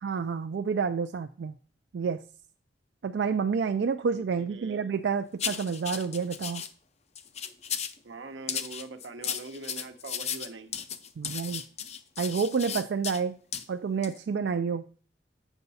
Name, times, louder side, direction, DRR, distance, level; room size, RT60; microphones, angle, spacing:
voice 1, 0.0-1.5 1.9-2.2 3.0-6.6 11.2-11.6 12.2-13.4 13.7-14.9, right 5 dB, 65° right, 7 dB, 0.4 m, -29 dB
voice 2, 4.1-4.8 8.0-10.7, right 3 dB, 90° right, 7 dB, 0.9 m, -43 dB
sound 1, 5.4-6.7 7.2-8.0 8.5-13.2 13.5-13.7 14.0-14.2, left 8 dB, 35° left, 0.5 m, -35 dB
8.0 x 5.6 x 4.1 m, 0.41 s
head